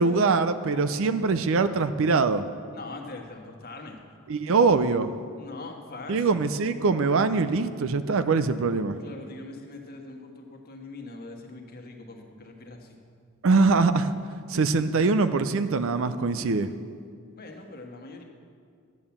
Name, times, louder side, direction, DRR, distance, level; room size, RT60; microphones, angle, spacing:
voice 1, 0.0-2.4 4.3-5.1 6.1-9.0 13.4-14.1 14.5-16.7, right 4 dB, 60° right, 11 dB, 0.5 m, -23 dB
voice 2, 2.7-4.0 5.4-6.5 9.0-13.0 17.4-18.2, left 2 dB, 45° left, 2 dB, 1.4 m, -42 dB
10.5 x 8.8 x 7.2 m, 2.2 s
head